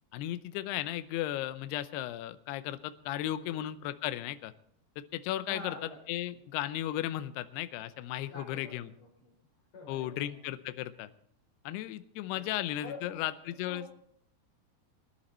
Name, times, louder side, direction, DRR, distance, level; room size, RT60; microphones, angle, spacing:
voice 1, 0.1-4.5 5.1-5.8 6.1-8.9 9.9-11.1 11.7-13.8, left 13 dB, 80° left, 12 dB, 2.7 m, -35 dB
voice 2, 3.3-3.6 5.5-6.0 6.3-6.4 8.3-9.3 9.7-10.5 12.3-13.2 13.7-14.0, left 2 dB, 40° left, 0 dB, 5.9 m, -47 dB
21.0 x 10.5 x 4.3 m, 0.69 s
omnidirectional pair, 4.8 m